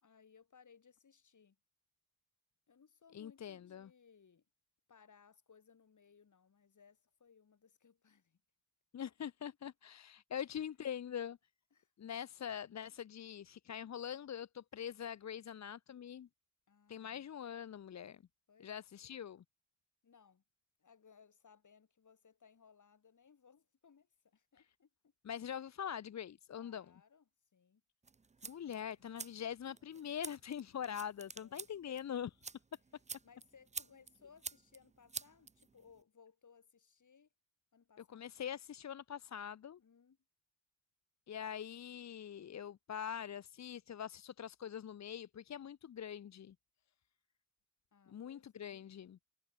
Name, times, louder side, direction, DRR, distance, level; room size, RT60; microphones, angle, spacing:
voice 1, 0.0-1.6 2.7-4.5 4.9-8.4 9.0-9.1 10.3-10.7 11.7-11.9 16.7-17.2 18.5-18.7 20.0-20.4 20.8-25.1 26.5-27.8 30.6-31.0 31.4-31.7 33.2-37.3 37.7-38.3 39.8-40.2 47.9-48.8, left 6 dB, 85° left, 3.4 m, -65 dB
voice 2, 3.1-3.9 8.9-11.4 12.0-16.3 16.9-18.2 18.6-19.4 25.2-26.9 28.4-32.4 38.1-39.8 41.3-46.5 48.1-49.2, left 9 dB, 65° left, 0.5 m, -44 dB
sound 1, 28.0-36.0, right 4 dB, 25° right, 0.4 m, -50 dB
wide cardioid pair, 100°, 29 cm